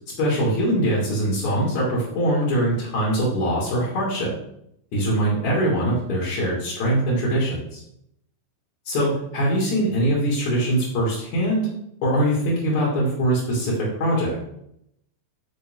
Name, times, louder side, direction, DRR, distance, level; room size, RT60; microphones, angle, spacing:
voice 1, 0.2-4.3 4.9-7.8 8.9-11.7 12.0-13.7 14.0-14.4, right 1 dB, 45° left, -5 dB, 3.6 m, -22 dB
13.5 x 6.5 x 3.9 m, 0.76 s
omnidirectional pair, 5.5 m